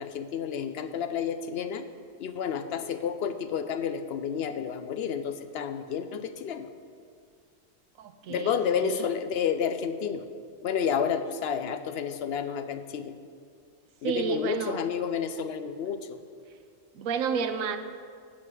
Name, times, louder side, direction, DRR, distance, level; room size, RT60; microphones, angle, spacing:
voice 1, 0.0-1.9 2.2-6.7 8.3-10.2 10.6-13.2 14.0-16.2, left 7 dB, 65° left, 9 dB, 0.7 m, -30 dB
voice 2, 8.0-9.1 14.0-14.8 16.9-17.8, right 6 dB, 85° right, 8 dB, 1.1 m, -31 dB
8.6 x 6.1 x 7.6 m, 2.1 s
omnidirectional pair, 1.4 m